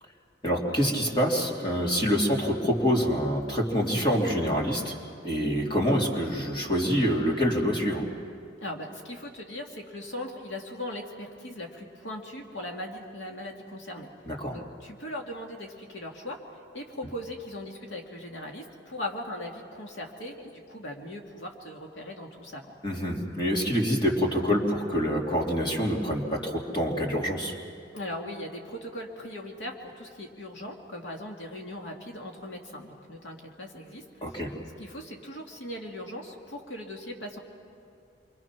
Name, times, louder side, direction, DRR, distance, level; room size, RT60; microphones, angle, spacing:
voice 1, 0.4-4.9 5.2-8.0 14.3-14.6 22.8-27.5 34.2-34.5, equal, 25° left, -2 dB, 3.1 m, -26 dB
voice 2, 8.6-14.1 14.5-22.7 27.9-34.3 34.8-37.4, left 1 dB, 80° left, 1 dB, 2.3 m, -39 dB
28.0 x 24.0 x 6.1 m, 2.5 s
head